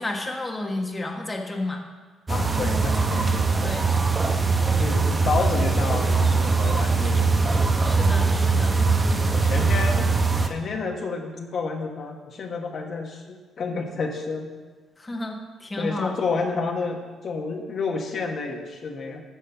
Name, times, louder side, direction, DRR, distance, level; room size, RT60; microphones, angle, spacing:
voice 1, 0.0-1.8 3.6-3.9 7.8-8.8 9.5-9.6 15.0-16.1, left 2 dB, 20° left, 1 dB, 1.3 m, -31 dB
voice 2, 2.3-3.3 3.6-3.7 4.8-7.3 9.3-10.1 10.4-14.5 15.8-19.2, left 4 dB, 55° left, 2 dB, 1.3 m, -30 dB
sound 1, 2.3-10.5, right 4 dB, 25° right, 0.9 m, -21 dB
10.5 x 5.5 x 7.1 m, 1.4 s
cardioid pair, 90°, 0 cm